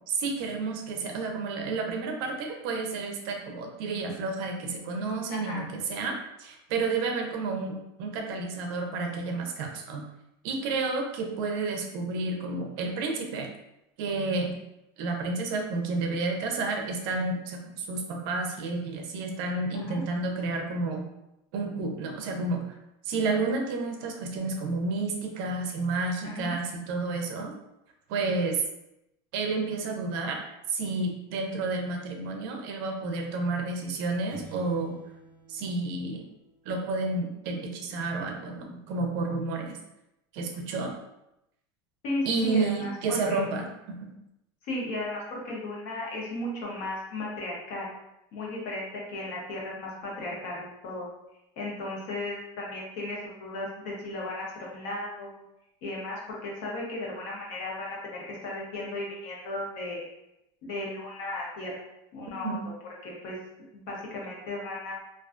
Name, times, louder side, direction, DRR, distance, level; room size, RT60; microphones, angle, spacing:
voice 1, 0.1-10.1 10.4-13.5 14.0-14.6 15.0-21.1 21.5-22.8 23.1-27.5 28.1-28.6 29.3-30.4 30.7-34.9 35.5-36.2 36.7-39.8 40.3-40.9 42.2-43.7 44.0-44.1 62.3-62.6, right 3 dB, 60° right, 3 dB, 0.5 m, -30 dB
voice 2, 5.3-5.6 19.7-20.0 26.2-26.5 42.0-43.5 44.6-47.9 48.3-51.1 51.6-55.4 55.8-60.0 60.6-61.8 62.1-62.5 63.0-63.4 63.7-64.9, left 2 dB, 60° left, -3 dB, 0.8 m, -35 dB
sound 1, 34.3-36.9, right 3 dB, 15° left, 0.6 m, -49 dB
2.3 x 2.2 x 2.4 m, 0.87 s
supercardioid pair, 160°, 13 cm